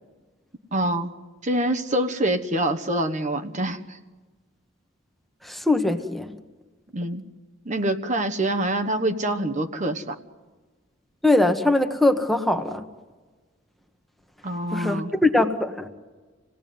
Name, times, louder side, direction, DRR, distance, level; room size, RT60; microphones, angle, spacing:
voice 1, 0.7-1.1 1.4-3.8 6.9-7.2 7.7-10.2 14.4-15.1, right 1 dB, 40° right, 7 dB, 1.2 m, -25 dB
voice 2, 5.4-6.3 11.2-12.8 14.7-15.9, left 2 dB, ahead, 6 dB, 1.3 m, -21 dB
27.0 x 18.0 x 9.3 m, 1.3 s
head